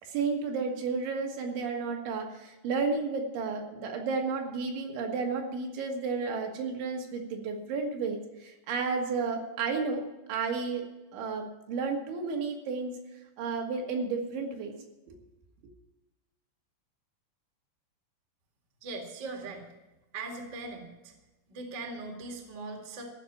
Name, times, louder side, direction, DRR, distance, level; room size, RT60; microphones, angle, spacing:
voice 1, 0.0-10.0 10.3-10.8 11.1-12.9 13.4-14.7 15.1-15.2, right 4 dB, 70° right, 2 dB, 3.8 m, -32 dB
voice 2, 18.8-19.7 20.1-21.1 21.5-23.1, right 3 dB, 45° right, 2 dB, 1.3 m, -40 dB
15.0 x 6.0 x 9.9 m, 1.1 s
omnidirectional pair, 5.7 m